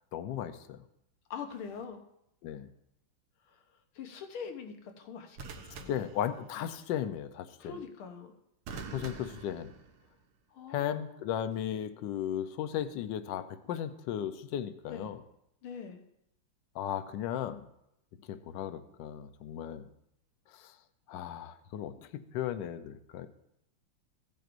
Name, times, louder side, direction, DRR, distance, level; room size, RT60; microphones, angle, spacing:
voice 1, 0.1-0.8 2.4-2.7 5.9-7.8 8.9-9.7 10.7-15.2 16.7-17.6 18.3-19.9 20.5-20.7 21.1-23.3, left 10 dB, 70° left, 10 dB, 1.3 m, -36 dB
voice 2, 1.3-2.0 3.5-3.6 4.0-5.4 5.8-6.0 7.6-8.3 10.5-11.2 14.9-15.1 15.6-16.0, left 6 dB, 90° left, 5 dB, 1.9 m, -43 dB
sound 1, 1.5-1.8 5.4-6.8 8.7-10.3 11.5-11.8, right 4 dB, 90° right, 1.8 m, -47 dB
16.0 x 9.2 x 2.6 m, 0.81 s
omnidirectional pair, 2.3 m